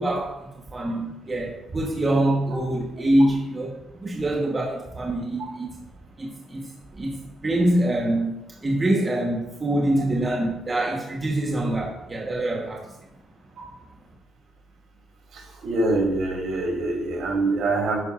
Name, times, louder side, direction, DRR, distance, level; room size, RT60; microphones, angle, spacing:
voice 1, 0.0-5.8 6.2-12.9, right 1 dB, 20° right, 1.1 m, -25 dB
voice 2, 15.3-18.0, right 2 dB, 65° right, 2.8 m, -24 dB
11.0 x 9.0 x 2.5 m
cardioid pair, 160°, 0 cm